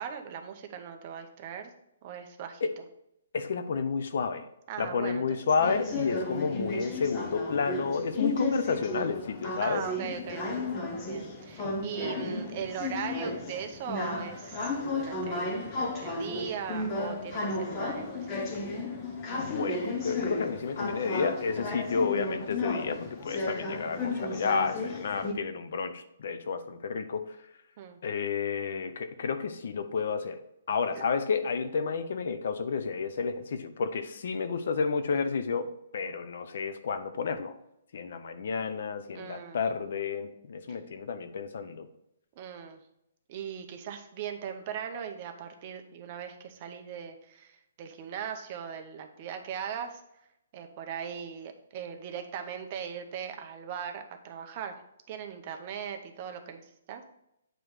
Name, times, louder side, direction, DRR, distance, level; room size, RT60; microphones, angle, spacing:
voice 1, 0.0-1.7 2.0-2.6 4.7-5.3 5.6-5.8 9.6-10.6 11.0-18.4 23.5-23.8 27.8-28.0 30.9-31.0 39.1-39.6 42.4-42.8 43.3-50.0 50.5-54.7 55.1-57.0, right 8 dB, 30° right, 5 dB, 0.7 m, -39 dB
voice 2, 3.3-4.5 4.8-9.8 11.6-11.7 19.4-27.3 28.0-30.4 30.7-37.5 37.9-41.9, left 5 dB, 55° left, 10 dB, 0.6 m, -31 dB
sound 1, 5.6-25.3, left 2 dB, 20° left, 0.8 m, -34 dB
8.9 x 3.1 x 4.8 m, 0.80 s
hypercardioid pair, 170°, 0 cm